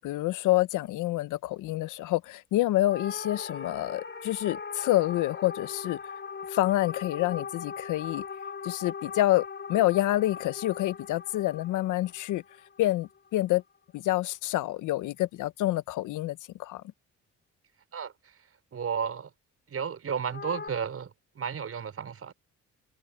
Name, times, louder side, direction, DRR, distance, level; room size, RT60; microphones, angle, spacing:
voice 1, 0.0-6.0 6.5-8.2 8.6-12.4 12.8-13.6 13.9-16.8, left 16 dB, 90° left, 0.8 m, -27 dB
sound 1, 2.9-13.4 20.3-20.7, left 5 dB, 40° left, 3.6 m, -40 dB
voice 2, 18.7-19.3 19.7-22.3, right 7 dB, 50° right, 5.3 m, -33 dB
cardioid pair, 90°, 30 cm